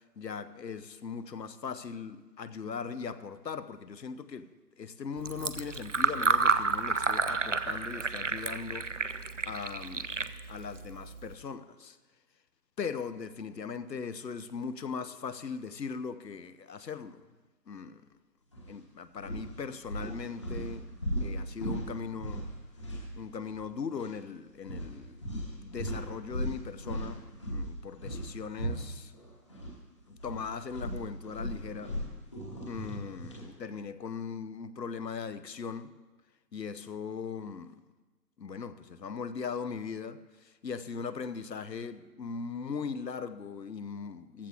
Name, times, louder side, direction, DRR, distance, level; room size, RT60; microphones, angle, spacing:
voice 1, 0.0-4.5 4.8-9.2 9.5-10.1 10.5-12.0 12.8-17.3 17.7-18.0 18.7-20.9 21.2-22.5 23.2-25.2 25.6-29.1 30.1-32.0 32.7-35.9 36.5-37.8 38.4-44.5, left 5 dB, 80° left, 0.9 m, -39 dB
Fill (with liquid), 5.2-11.3, right 4 dB, 50° right, 0.5 m, -31 dB
sound 1, 18.5-18.7 19.2-23.6 23.9-24.1 24.6-29.8 30.1-33.5, equal, 20° left, 1.1 m, -38 dB
15.5 x 14.5 x 2.5 m
figure-of-eight pair, 165°, 49 cm